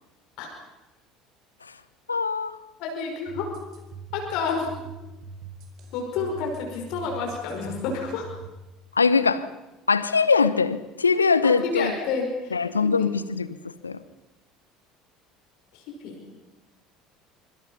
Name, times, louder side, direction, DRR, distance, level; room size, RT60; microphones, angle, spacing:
voice 1, 2.1-2.6 9.0-9.5 9.9-11.9 12.5-14.0, left 5 dB, 85° left, 15 dB, 0.9 m, -22 dB
voice 2, 2.8-3.5 4.1-4.7 5.9-8.3 11.4-12.6 12.8-13.1 15.7-16.2, left 5 dB, 55° left, 1 dB, 5.4 m, -29 dB
sound 1, 3.3-8.5, right 5 dB, 50° right, 4.2 m, -42 dB
25.5 x 24.5 x 5.7 m, 1.0 s
figure-of-eight pair, 65°, 0 cm